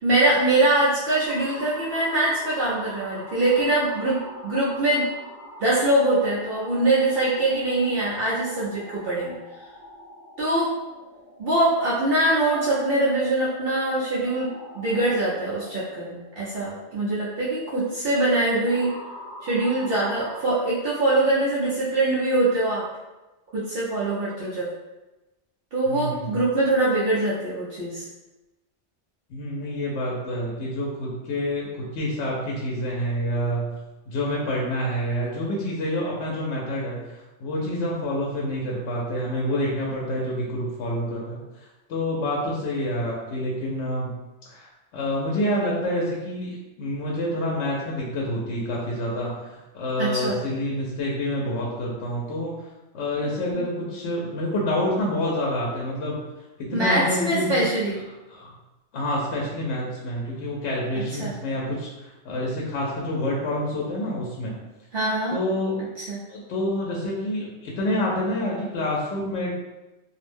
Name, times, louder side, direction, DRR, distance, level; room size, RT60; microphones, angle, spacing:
voice 1, 0.0-5.1 5.6-9.4 10.4-10.7 11.4-18.9 19.4-22.8 23.5-24.7 25.7-28.0 50.0-50.4 53.5-53.6 56.7-58.0 61.0-61.4 64.9-65.4 66.1-66.2, right 2 dB, 60° right, -8 dB, 0.8 m, -23 dB
sound 1, 1.3-20.5, equal, 25° left, 0.4 m, -43 dB
voice 2, 25.9-26.5 29.3-33.8 34.1-44.2 44.4-52.5 52.9-56.2 56.6-57.6 58.3-58.5 58.9-64.5 65.3-65.8 66.3-69.5, left 1 dB, 75° left, -3 dB, 0.8 m, -28 dB
2.5 x 2.0 x 3.2 m, 1.1 s
omnidirectional pair, 1.2 m